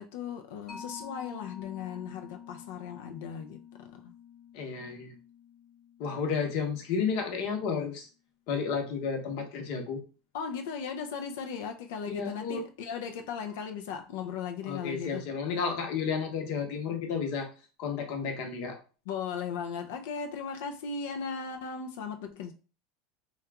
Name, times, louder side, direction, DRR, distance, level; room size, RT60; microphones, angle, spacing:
voice 1, 0.0-4.2 10.3-15.3 19.1-22.5, left 6 dB, 80° left, 0.4 m, -37 dB
Mallet percussion, 0.7-7.7, left 7 dB, 20° left, 0.7 m, -49 dB
voice 2, 4.5-5.1 6.0-8.1 8.5-10.0 12.1-12.6 14.7-17.5 17.8-18.8, left 6 dB, 60° left, 0.9 m, -32 dB
2.9 x 2.3 x 3.4 m
supercardioid pair, 155°, 0 cm